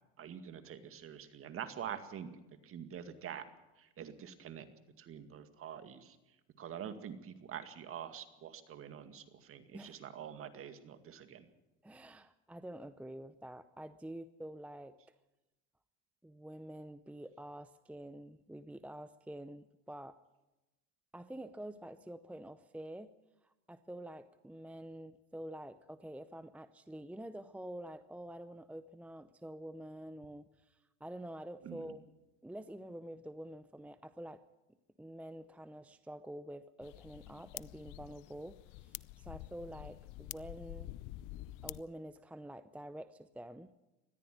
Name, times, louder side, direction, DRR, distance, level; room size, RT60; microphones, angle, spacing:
voice 1, 0.2-2.3 2.6-3.4 3.8-4.7 5.0-6.2 6.6-11.5 31.6-32.0, right 8 dB, 40° right, 10 dB, 2.1 m, -46 dB
voice 2, 11.8-14.9 16.2-20.2 21.1-23.1 23.4-32.0 32.4-34.4 35.0-40.9 41.6-43.7, right 1 dB, 5° right, 12 dB, 0.6 m, -48 dB
sound 1, 36.8-41.8, left 17 dB, 60° left, 0.7 m, -48 dB
20.5 x 14.0 x 9.4 m, 1.0 s
supercardioid pair, 110°, 35 cm